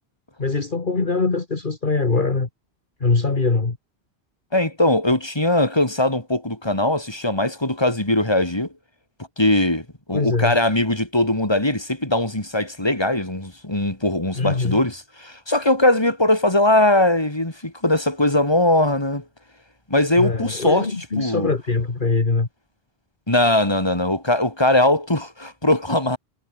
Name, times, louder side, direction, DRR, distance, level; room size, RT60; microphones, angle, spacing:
voice 1, 0.4-2.5 3.0-3.8 10.1-10.6 14.3-14.8 20.2-22.5, left 3 dB, 50° left, 2.1 m, -22 dB
voice 2, 4.5-8.7 9.4-19.2 19.9-20.9 21.2-21.5 23.3-26.2, left 1 dB, 25° left, 3.7 m, -20 dB
omnidirectional pair, 1.1 m